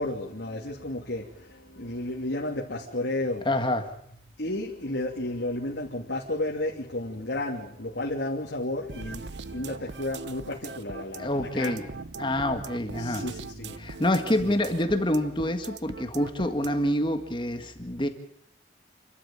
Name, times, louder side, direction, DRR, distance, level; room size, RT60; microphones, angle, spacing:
voice 1, 0.0-3.5 4.4-11.9 13.0-14.0 14.4-14.5, left 1 dB, 75° left, -2 dB, 2.9 m, -32 dB
voice 2, 3.5-3.9 11.2-11.8 12.2-13.2 13.8-18.1, left 1 dB, 25° left, 7 dB, 1.7 m, -27 dB
sound 1, 8.9-16.9, right 4 dB, 75° right, 0.8 m, -40 dB
28.0 x 13.0 x 8.8 m, 0.70 s
head